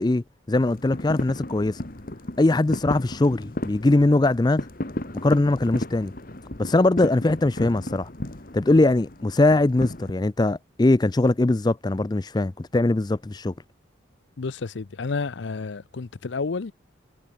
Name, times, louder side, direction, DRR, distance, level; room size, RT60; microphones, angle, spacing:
voice 1, 0.0-1.8 2.4-4.7 5.2-6.1 6.6-8.1 8.5-13.5, left 2 dB, 20° left, 0.4 m, -21 dB
sound 1, 0.6-10.1, left 1 dB, 45° left, 1.7 m, -34 dB
voice 2, 14.4-16.7, left 4 dB, 65° left, 0.6 m, -30 dB
head